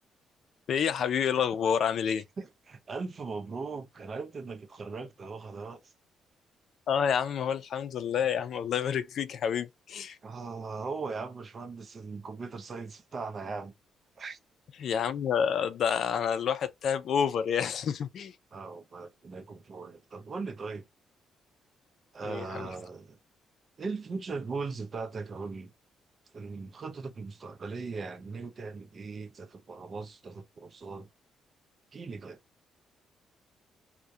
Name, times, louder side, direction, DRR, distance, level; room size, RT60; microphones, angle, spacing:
voice 1, 0.7-2.2 6.9-10.2 14.8-18.3 22.2-22.7, left 7 dB, 65° left, 0.3 m, -29 dB
voice 2, 2.4-5.8 10.2-13.7 14.2-14.4 18.5-20.9 22.1-23.2 23.8-25.7 26.3-31.1 31.9-32.4, right 4 dB, 40° right, 0.5 m, -39 dB
2.3 x 2.1 x 2.6 m
cardioid pair, 90°, 0 cm